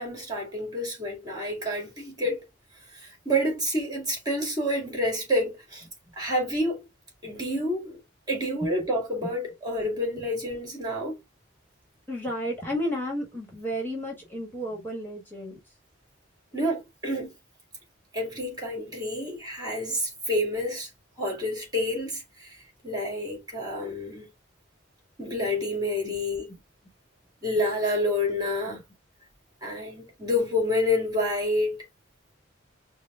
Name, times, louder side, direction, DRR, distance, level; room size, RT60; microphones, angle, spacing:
voice 1, 0.0-2.4 2.9-5.8 6.2-6.8 7.2-8.0 8.3-11.2 16.5-17.3 18.1-20.9 21.2-22.6 22.8-24.3 25.2-26.5 27.4-28.8 29.6-31.8, left 1 dB, 20° right, 2.1 m, -28 dB
voice 2, 12.1-15.6 26.0-26.2 26.5-26.6 28.7-28.8, equal, 10° left, 1.4 m, -33 dB
4.8 x 2.1 x 3.7 m
head